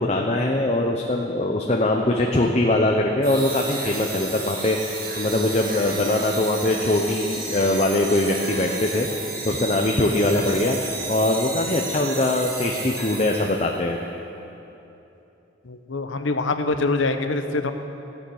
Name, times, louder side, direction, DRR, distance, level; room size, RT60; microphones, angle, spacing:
voice 1, 0.0-10.8 11.1-14.0, left 1 dB, 35° left, 1 dB, 0.7 m, -22 dB
sound 1, 3.2-13.8, right 3 dB, 45° right, 1.8 m, -33 dB
voice 2, 15.6-17.7, left 3 dB, 80° left, 8 dB, 0.9 m, -24 dB
16.5 x 8.5 x 6.5 m, 3.0 s
head